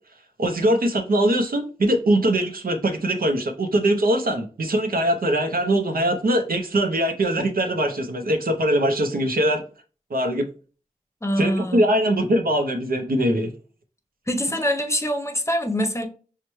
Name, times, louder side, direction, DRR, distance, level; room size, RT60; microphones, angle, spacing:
voice 1, 0.4-9.6 10.1-10.5 11.4-13.5, right 1 dB, 80° right, 0.6 m, -22 dB
voice 2, 11.2-11.8 14.3-16.1, equal, 20° left, 0.7 m, -24 dB
5.6 x 2.1 x 3.0 m
wide cardioid pair, 50°, 15 cm